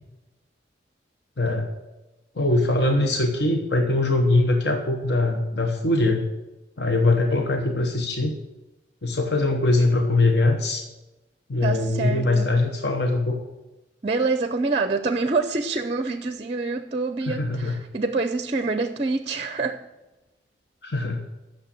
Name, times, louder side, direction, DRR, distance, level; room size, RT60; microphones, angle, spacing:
voice 1, 1.4-1.7 2.4-6.2 6.8-8.4 9.0-10.9 11.5-13.4 17.3-17.8 20.8-21.2, left 2 dB, 60° left, 3 dB, 1.0 m, -22 dB
voice 2, 11.6-12.5 14.0-19.8, right 3 dB, 30° right, 10 dB, 0.5 m, -26 dB
8.7 x 6.5 x 8.3 m, 1.0 s
head